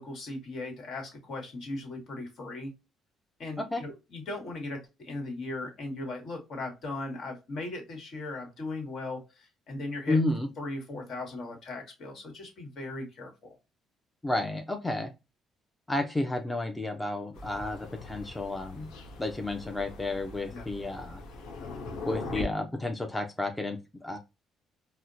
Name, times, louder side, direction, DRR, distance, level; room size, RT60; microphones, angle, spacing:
voice 1, 0.0-2.7 3.4-10.2 10.6-13.6 20.5-20.7 22.3-22.4, left 2 dB, 65° left, 2 dB, 1.3 m, -38 dB
voice 2, 10.1-10.5 14.2-15.1 15.9-18.9 19.2-21.2 22.1-24.2, left 2 dB, 10° left, 5 dB, 0.5 m, -31 dB
Thunder, 17.3-22.4, left 3 dB, 85° left, 0.6 m, -41 dB
4.2 x 2.1 x 2.5 m, 0.27 s
cardioid pair, 85°, 0 cm